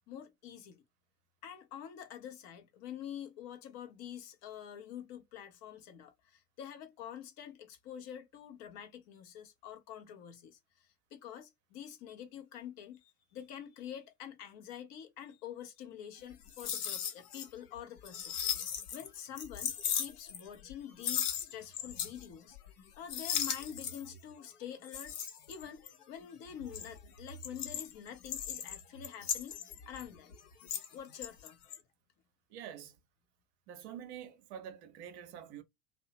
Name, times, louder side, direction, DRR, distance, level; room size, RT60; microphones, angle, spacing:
voice 1, 0.1-0.8 1.4-18.4 18.9-22.6 22.9-25.1 25.5-30.3 30.9-31.7, left 9 dB, 35° left, 0.5 m, -47 dB
sound 1, 16.3-17.5 17.8-19.1 19.4-20.8 21.0-22.3 22.5-22.8 23.1-24.2 24.8-26.0 26.5-30.9 31.2-31.8, left 8 dB, 70° left, 0.8 m, -37 dB
voice 2, 32.5-33.0 33.7-35.6, right 9 dB, 45° right, 0.6 m, -47 dB
2.6 x 2.0 x 2.7 m
figure-of-eight pair, 80°, 48 cm